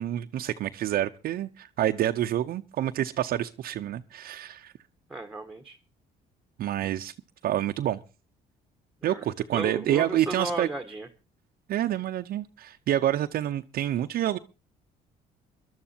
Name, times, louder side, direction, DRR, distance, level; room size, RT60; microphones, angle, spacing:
voice 1, 0.0-4.7 6.6-7.1 7.4-8.0 9.0-10.7 11.7-14.4, right 12 dB, 60° right, 0.7 m, -28 dB
voice 2, 5.1-5.8 9.1-9.3 9.5-11.1, right 2 dB, 5° right, 1.4 m, -34 dB
23.5 x 12.0 x 2.8 m
cardioid pair, 110°, 17 cm